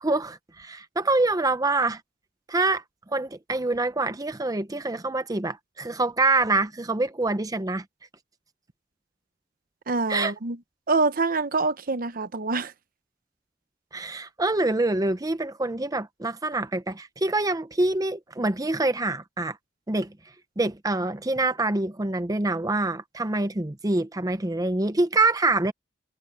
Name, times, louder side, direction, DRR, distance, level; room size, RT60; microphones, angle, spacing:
voice 1, 0.0-2.0 2.5-7.8 10.1-10.3 13.9-19.6 19.9-20.1 20.6-25.7, right 2 dB, 20° right, 0.7 m, -25 dB
voice 2, 9.9-10.6 10.9-12.7, right 3 dB, 50° right, 0.9 m, -25 dB
head